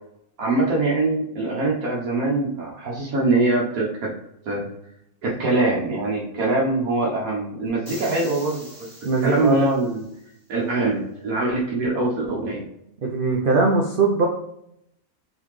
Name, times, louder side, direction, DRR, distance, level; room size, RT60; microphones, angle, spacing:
voice 1, 0.4-4.1 4.5-4.7 5.2-8.7 9.2-10.1 10.5-12.6, right 2 dB, 70° right, -3 dB, 1.4 m, -23 dB
sound 1, 7.8-10.1, right 1 dB, 25° right, 1.8 m, -43 dB
voice 2, 9.0-9.6 13.0-14.3, right 3 dB, 55° right, 0 dB, 0.6 m, -20 dB
3.9 x 3.9 x 3.1 m, 0.78 s
omnidirectional pair, 1.6 m